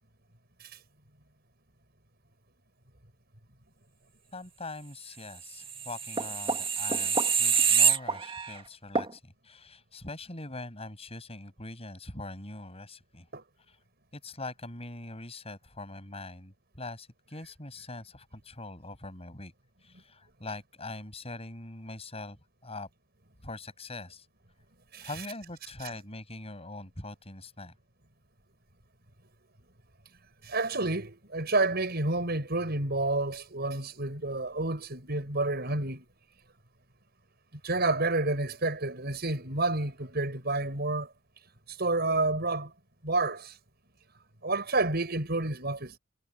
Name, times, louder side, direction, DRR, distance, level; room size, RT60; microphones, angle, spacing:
voice 1, 4.3-13.3 13.7-13.8 14.1-19.5 19.8-22.9 23.4-24.3 25.0-27.7, left 2 dB, 30° left, 7.2 m, -42 dB
sound 1, 5.6-8.6 8.9-9.1, right 6 dB, 30° right, 1.9 m, -26 dB
voice 2, 30.4-36.0 37.6-41.1 41.7-42.7 43.0-43.6 44.4-46.0, right 2 dB, 55° right, 6.9 m, -29 dB
head